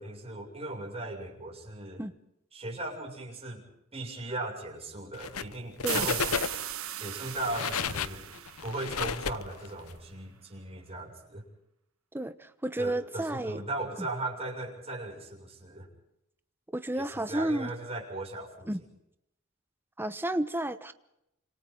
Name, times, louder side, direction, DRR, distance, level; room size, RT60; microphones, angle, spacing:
voice 1, 0.0-2.0 2.5-3.6 3.9-6.3 7.0-8.3 8.6-11.4 12.8-15.9 17.0-18.7, right 2 dB, 30° right, 0 dB, 6.9 m, -38 dB
sound 1, 5.1-5.5 5.8-6.8 7.3-9.9, left 6 dB, 75° left, 0.9 m, -32 dB
sound 2, 5.9-9.5, right 12 dB, 70° right, 1.4 m, -37 dB
voice 2, 12.1-13.6 14.0-14.1 16.7-17.7 18.7-18.8 20.0-20.9, right 1 dB, 10° right, 10 dB, 1.0 m, -32 dB
29.5 x 27.0 x 3.9 m, 0.82 s
head